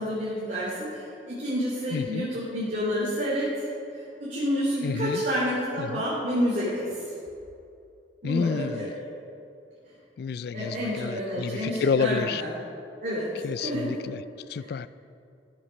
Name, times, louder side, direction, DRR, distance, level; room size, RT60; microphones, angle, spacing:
voice 1, 0.0-7.0 8.2-8.9 10.5-12.5 13.0-14.0 14.5-14.7, equal, 45° right, -8 dB, 2.9 m, -29 dB
voice 2, 1.9-2.3 4.8-5.2 5.8-6.0 8.2-8.9 10.2-12.4 13.4-14.2 14.5-14.9, left 5 dB, 60° left, 17 dB, 0.3 m, -29 dB
15.0 x 7.1 x 5.4 m, 2.6 s
head